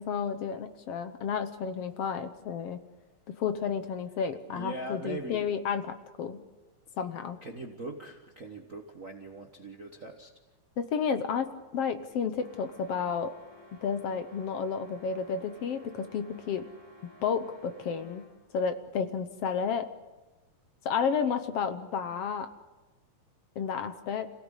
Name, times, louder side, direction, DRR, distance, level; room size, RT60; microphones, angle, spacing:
voice 1, 0.0-2.8 3.3-6.4 7.0-7.4 10.8-13.3 13.8-16.7 17.2-18.3 18.5-19.9 20.8-22.5 23.6-24.3, left 6 dB, 65° left, 9 dB, 1.7 m, -31 dB
voice 2, 4.5-5.5 7.4-10.3, right 2 dB, 45° right, 2 dB, 1.0 m, -40 dB
sound 1, 12.4-18.5, left 1 dB, 5° right, 5.4 m, -55 dB
27.0 x 17.5 x 8.2 m, 1.2 s
omnidirectional pair, 3.5 m